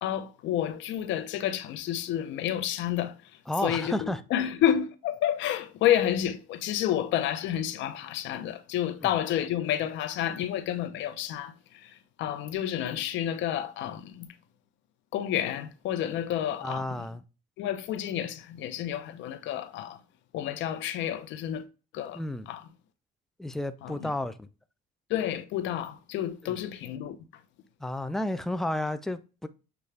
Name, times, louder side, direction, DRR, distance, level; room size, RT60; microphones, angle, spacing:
voice 1, 0.0-14.3 15.1-17.0 17.6-20.0 20.3-21.6 21.9-22.6 23.8-24.1 25.1-27.4, left 11 dB, 70° left, 0.7 m, -30 dB
voice 2, 3.5-4.2 9.0-9.1 16.6-17.2 22.1-22.5 23.4-24.5 26.4-26.6 27.8-29.5, left 1 dB, ahead, 0.4 m, -32 dB
6.9 x 2.4 x 3.2 m
cardioid pair, 105°, 20 cm